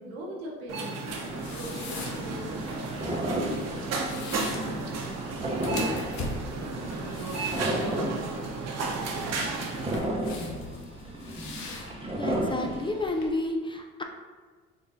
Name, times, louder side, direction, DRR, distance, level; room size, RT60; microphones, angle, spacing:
voice 1, 0.0-2.7 3.0-5.2, equal, 85° right, -1 dB, 0.9 m, -41 dB
sound 1, 0.7-10.0, right 3 dB, 55° right, 0.8 m, -33 dB
sound 2, 1.1-13.3, left 3 dB, 65° left, 0.8 m, -42 dB
sound 3, 1.3-12.9, right 1 dB, 20° right, 0.7 m, -34 dB
voice 2, 12.2-14.0, left 2 dB, 15° left, 3 dB, 0.4 m, -30 dB
3.8 x 3.7 x 2.6 m, 1.4 s
supercardioid pair, 70°, 31 cm